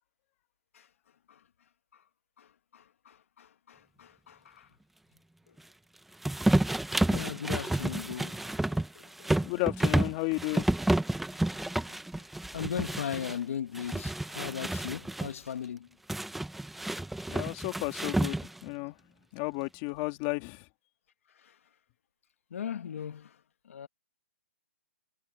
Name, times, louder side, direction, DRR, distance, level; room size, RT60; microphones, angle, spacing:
voice 1, 2.7-4.7 7.1-9.3 11.5-12.0 12.5-15.9 21.4-21.5 22.5-23.3 23.7-23.9, left 8 dB, 65° left, 1.8 m, -38 dB
sound 1, 6.2-13.4 13.7-15.3 16.1-18.7, right 1 dB, ahead, 0.7 m, -30 dB
voice 2, 9.4-10.6 17.3-19.0 19.3-20.6, left 25 dB, 30° left, 2.5 m, -33 dB
hypercardioid pair, 160°, 8 cm